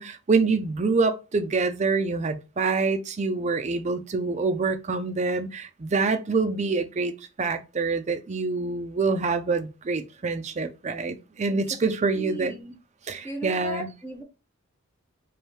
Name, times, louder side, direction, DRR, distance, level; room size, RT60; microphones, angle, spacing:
voice 1, 0.0-7.1 7.4-12.5 13.1-13.9, right 4 dB, 35° right, 0.4 m, -26 dB
voice 2, 12.1-12.8 13.2-14.2, right 1 dB, 10° left, 0.7 m, -36 dB
4.6 x 2.7 x 3.1 m
head